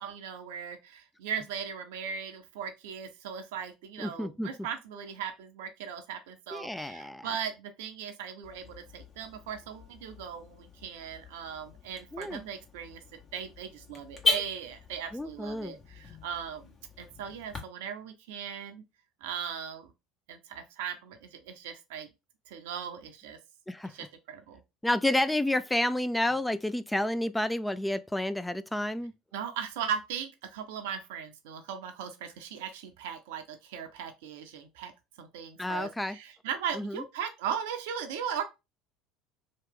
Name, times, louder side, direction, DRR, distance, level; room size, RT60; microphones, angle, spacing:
voice 1, 0.0-13.0 13.3-18.8 19.2-19.9 20.3-22.1 22.5-23.4 23.9-24.6 29.3-34.9 35.2-38.4, right 8 dB, 75° right, 0.5 m, -38 dB
voice 2, 4.0-4.5 6.5-7.3 12.1-12.4 15.1-15.8 23.7-23.9 24.8-29.1 35.6-36.2 36.7-37.0, left 1 dB, 10° left, 0.3 m, -30 dB
Car / Alarm, 8.4-17.6, left 3 dB, 35° left, 1.1 m, -38 dB
2.9 x 2.2 x 3.5 m
hypercardioid pair, 75°, 0 cm